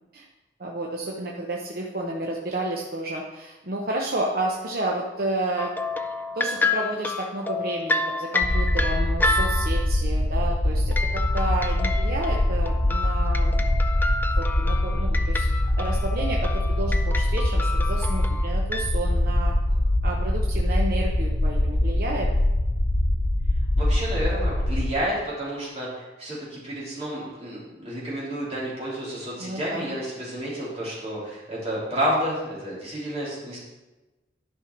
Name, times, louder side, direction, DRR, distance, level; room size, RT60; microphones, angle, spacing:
voice 1, 0.6-5.7 6.4-13.6 14.4-15.5 15.8-19.5 20.0-22.3 29.4-29.9, right 2 dB, 55° right, -1 dB, 0.9 m, -31 dB
sound 1, 5.6-10.0 10.9-18.9, left 3 dB, 10° left, 0.4 m, -29 dB
sound 2, 8.4-24.9, left 1 dB, 75° left, 1.1 m, -23 dB
voice 2, 23.8-33.6, equal, 35° right, -7 dB, 3.3 m, -30 dB
11.0 x 5.6 x 4.6 m, 1.1 s
head